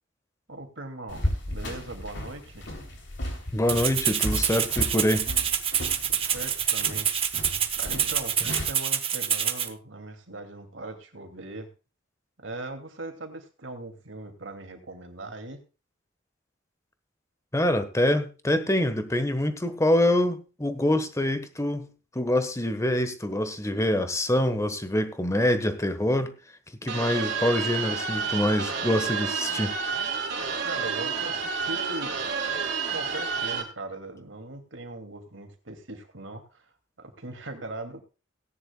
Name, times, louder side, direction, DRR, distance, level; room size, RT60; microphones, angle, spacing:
voice 1, 0.5-2.7 6.0-7.1 7.8-11.7 12.4-15.6 30.6-32.1 32.9-36.7 37.0-38.0, right 2 dB, 85° right, 2.6 m, -40 dB
sound 1, 1.1-8.7, left 1 dB, 70° left, 3.3 m, -35 dB
voice 2, 3.5-5.3 17.5-21.9 22.1-26.4 26.8-29.7, left 1 dB, 15° left, 1.3 m, -25 dB
Rattle (instrument), 3.7-9.7, right 8 dB, 30° right, 1.1 m, -26 dB
sound 2, 26.9-33.6, right 5 dB, 65° right, 3.3 m, -30 dB
18.0 x 10.5 x 2.3 m
head